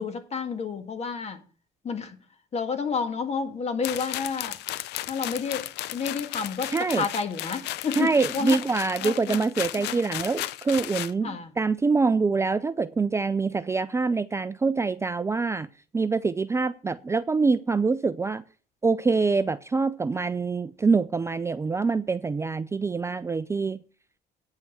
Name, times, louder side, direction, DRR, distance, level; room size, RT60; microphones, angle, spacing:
voice 1, 0.0-1.4 1.8-2.2 2.5-4.6 5.1-8.6 9.0-9.5 9.8-10.0 11.2-11.5, left 5 dB, 40° left, 1.7 m, -30 dB
sound 1, 3.8-11.1, left 15 dB, 80° left, 0.6 m, -34 dB
voice 2, 6.7-7.0 8.0-15.7 15.9-18.4 18.8-23.8, right 4 dB, 15° right, 0.4 m, -25 dB
9.1 x 5.7 x 7.7 m
cardioid pair, 110°, 17 cm